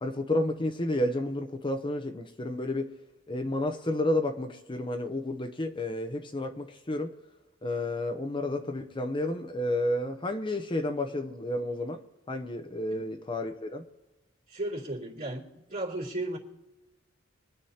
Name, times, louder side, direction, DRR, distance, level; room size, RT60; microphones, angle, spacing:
voice 1, 0.0-2.9 3.3-7.1 7.6-12.0 12.3-13.8, left 1 dB, 25° left, 6 dB, 0.7 m, -31 dB
voice 2, 14.5-16.4, right 1 dB, 45° right, -5 dB, 3.0 m, -35 dB
24.0 x 10.0 x 2.8 m, 1.0 s
head